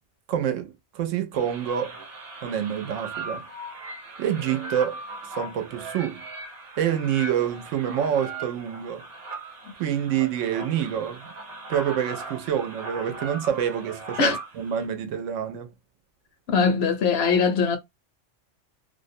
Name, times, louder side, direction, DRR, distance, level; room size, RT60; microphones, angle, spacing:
voice 1, 0.3-2.0 2.4-3.4 4.2-5.0 5.4-6.2 6.8-9.1 9.8-11.3 11.7-15.7, right 9 dB, 85° right, 0.9 m, -27 dB
sound 1, 1.3-14.9, right 2 dB, 55° right, 0.9 m, -39 dB
voice 2, 16.5-17.8, left 5 dB, 65° left, 0.7 m, -21 dB
2.5 x 2.1 x 2.6 m
omnidirectional pair, 1.3 m